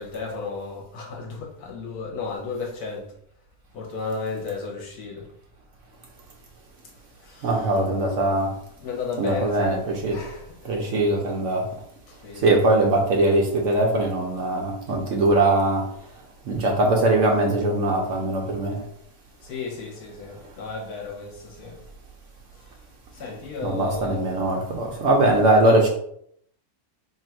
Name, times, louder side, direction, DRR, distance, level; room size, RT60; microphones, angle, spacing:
voice 1, 0.0-3.1 3.7-5.3 7.2-7.8 8.8-9.8 10.1-10.9 12.1-12.8 18.0-18.3 18.6-18.7 19.4-21.8 22.5-22.7 23.1-24.4, left 4 dB, 80° left, 1.5 m, -34 dB
voice 2, 7.4-8.5 9.2-10.2 10.6-11.7 12.4-15.8 16.5-18.8 23.6-25.9, right 2 dB, 60° right, 0.9 m, -21 dB
3.1 x 2.5 x 4.3 m
omnidirectional pair, 1.6 m